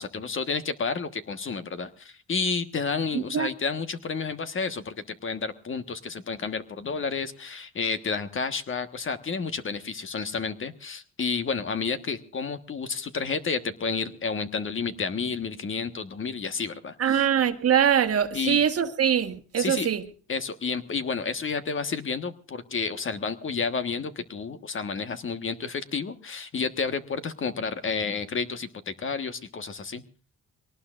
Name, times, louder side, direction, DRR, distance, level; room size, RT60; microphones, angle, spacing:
voice 1, 0.0-17.3 18.3-18.6 19.6-19.9 20.3-30.0, left 5 dB, 40° left, 1.4 m, -31 dB
voice 2, 3.1-3.5 17.0-20.0, right 9 dB, 50° right, 1.4 m, -23 dB
23.5 x 18.5 x 2.5 m
cardioid pair, 90°, 30 cm